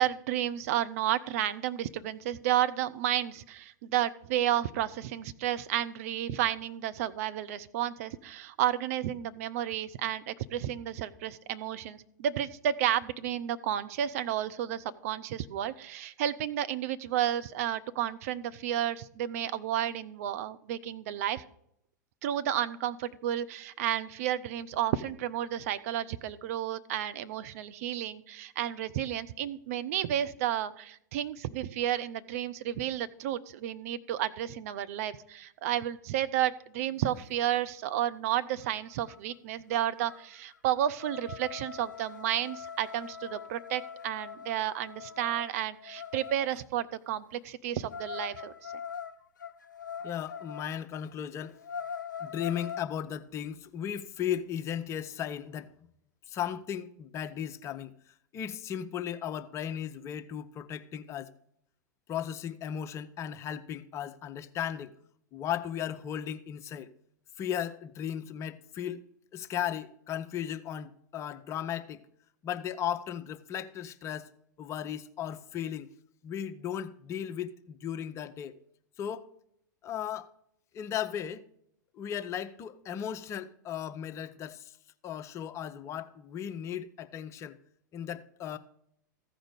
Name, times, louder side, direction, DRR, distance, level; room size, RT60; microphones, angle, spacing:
voice 1, 0.0-21.4 22.2-48.7, right 11 dB, 50° right, 0.6 m, -32 dB
sound 1, 38.7-38.8 39.0-39.3 39.7-46.6 47.9-50.7 51.1-51.2 51.5-52.9, left 7 dB, 75° left, 0.5 m, -42 dB
voice 2, 50.0-51.6 52.2-55.7 56.3-57.9 58.3-61.3 62.1-64.9 65.3-66.9 67.4-69.0 69.3-72.0 72.4-74.3 74.6-75.9 76.2-78.5 79.0-79.2 79.8-80.3 80.7-81.4 81.9-84.8 85.0-87.6 87.9-88.6, left 9 dB, 30° left, 0.6 m, -36 dB
14.5 x 5.1 x 5.0 m
figure-of-eight pair, 90°, 10 cm